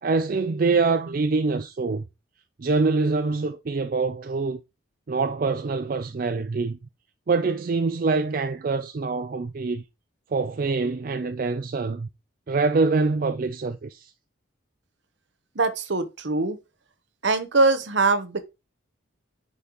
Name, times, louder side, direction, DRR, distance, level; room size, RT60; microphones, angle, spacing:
voice 1, 0.0-2.0 2.6-4.6 5.1-6.8 7.3-9.8 10.3-12.1 12.5-14.1, right 4 dB, 45° right, 0.4 m, -25 dB
voice 2, 15.6-16.6 17.2-18.4, right 3 dB, 60° right, 0.9 m, -22 dB
10.0 x 5.3 x 3.0 m
head